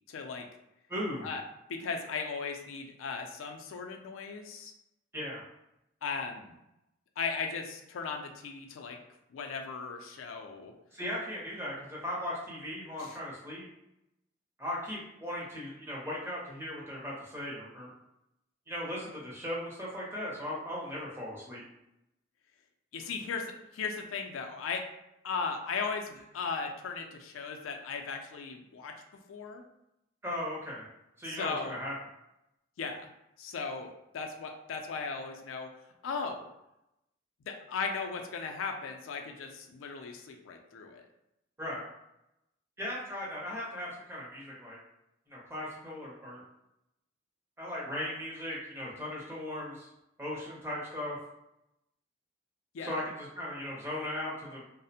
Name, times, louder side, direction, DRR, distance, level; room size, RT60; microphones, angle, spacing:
voice 1, 0.1-0.5 1.2-1.4 1.7-4.7 6.0-6.5 7.2-9.0 9.3-10.7 13.0-13.2 22.9-24.8 25.2-28.9 29.3-29.6 31.2-31.8 32.8-33.1 33.4-35.7 36.0-36.4 37.5-41.0 52.7-52.9, left 5 dB, 90° left, 4 dB, 0.4 m, -37 dB
voice 2, 0.9-1.3 5.1-5.4 10.9-13.7 14.6-17.9 18.7-21.6 30.2-30.9 31.2-31.9 41.6-41.8 42.8-44.8 45.3-46.4 47.6-49.9 50.2-51.2 52.8-54.6, left 1 dB, 10° right, -5 dB, 0.6 m, -37 dB
2.4 x 2.0 x 2.7 m, 0.87 s
head